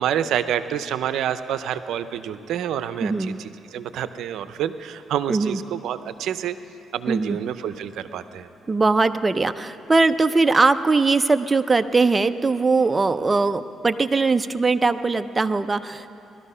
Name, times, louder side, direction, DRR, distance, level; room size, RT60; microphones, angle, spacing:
voice 1, 0.0-6.6 6.9-8.5, right 9 dB, 80° right, 12 dB, 0.5 m, -28 dB
voice 2, 3.0-3.4 5.3-5.6 7.1-7.4 8.7-16.1, right 3 dB, 25° right, 10 dB, 0.5 m, -20 dB
19.5 x 12.5 x 5.5 m, 2.9 s
cardioid pair, 90°, 0 cm